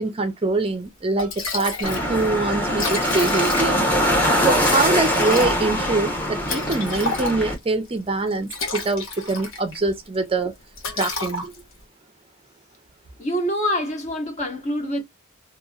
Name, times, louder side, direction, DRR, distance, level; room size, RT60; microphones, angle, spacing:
voice 1, 0.0-3.9 4.4-10.5 10.9-11.5, right 3 dB, 25° right, 0.5 m, -24 dB
Liquid, 0.8-0.9 1.2-2.1 2.4-2.5 2.7-3.9 4.6-7.6 8.3-9.8 10.1-10.4 10.8-11.8, left 3 dB, 65° left, 1.2 m, -30 dB
sound 1, 1.8-7.5, equal, 10° left, 0.9 m, -22 dB
voice 2, 13.2-15.0, equal, 35° left, 1.1 m, -25 dB
2.8 x 2.7 x 2.3 m
head